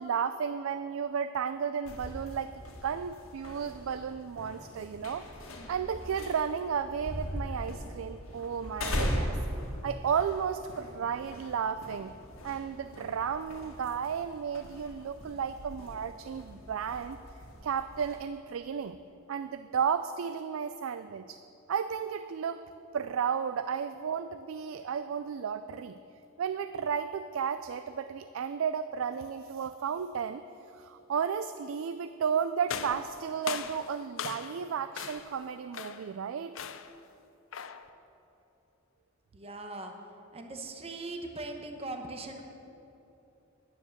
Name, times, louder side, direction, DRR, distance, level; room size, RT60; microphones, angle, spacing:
voice 1, 0.0-9.4 9.8-12.1 12.4-17.2 17.6-19.0 19.3-21.4 21.7-22.6 22.9-26.0 26.4-30.4 30.7-36.5, right 7 dB, 75° right, 11 dB, 0.4 m, -33 dB
sound 1, 1.8-18.2, equal, 90° left, 1.6 m, -40 dB
sound 2, 32.7-34.7 35.0-35.4 35.7-36.1 36.6-37.0 37.5-37.9, left 7 dB, 70° left, 0.6 m, -39 dB
voice 2, 39.3-39.9 40.3-42.4, right 2 dB, 30° right, 4 dB, 0.9 m, -40 dB
9.8 x 9.6 x 6.6 m, 2.9 s
head